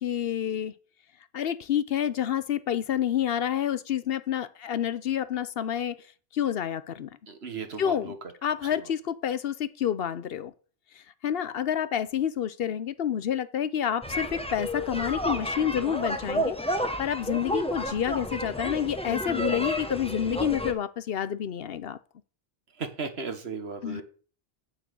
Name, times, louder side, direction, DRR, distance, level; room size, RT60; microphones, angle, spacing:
voice 1, 0.0-0.7 1.3-6.0 6.3-7.1 7.8-8.1 8.4-10.5 11.2-16.6 17.0-22.0 23.8-24.0, left 9 dB, 70° left, 0.9 m, -28 dB
voice 2, 7.3-8.1 22.8-24.0, right 4 dB, 80° right, 1.6 m, -35 dB
sound 1, 14.0-20.7, equal, 5° left, 1.0 m, -31 dB
8.6 x 6.9 x 6.8 m
omnidirectional pair, 1.0 m